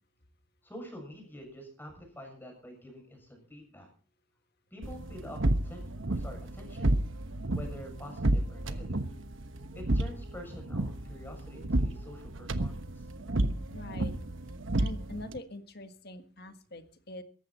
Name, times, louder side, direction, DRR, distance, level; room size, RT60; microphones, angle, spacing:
voice 1, 0.6-3.9 4.7-6.9 7.5-9.0 9.7-13.1, equal, 10° left, 2 dB, 7.1 m, -47 dB
sound 1, 4.8-15.4, right 1 dB, 65° right, 1.2 m, -31 dB
voice 2, 13.7-14.1 14.8-17.2, left 1 dB, 50° left, 9 dB, 1.6 m, -44 dB
18.0 x 14.5 x 4.3 m, 0.40 s
head